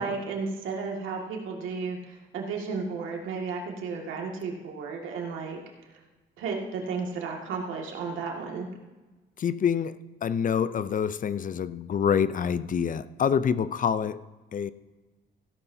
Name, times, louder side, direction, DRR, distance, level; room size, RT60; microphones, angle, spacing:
voice 1, 0.0-5.6 6.4-8.7, right 4 dB, 85° right, 0 dB, 2.1 m, -33 dB
voice 2, 9.4-14.2 14.5-14.7, left 7 dB, 45° left, 15 dB, 0.5 m, -26 dB
16.0 x 11.5 x 2.7 m, 1.2 s
cardioid pair, 90°, 20 cm